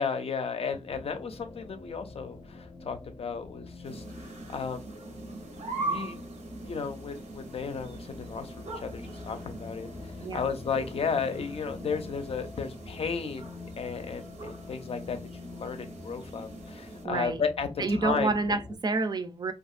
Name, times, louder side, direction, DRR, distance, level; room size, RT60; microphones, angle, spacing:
voice 1, 0.0-5.0 5.5-6.3 6.6-13.5 13.8-18.3, left 5 dB, 55° left, 0.5 m, -34 dB
sound 1, 0.9-18.8, left 4 dB, 20° left, 0.7 m, -46 dB
sound 2, 3.8-17.1, right 3 dB, 80° right, 0.7 m, -42 dB
voice 2, 17.0-17.4 17.8-19.5, right 3 dB, 35° right, 0.4 m, -28 dB
2.7 x 2.4 x 2.4 m
wide cardioid pair, 120°, 12 cm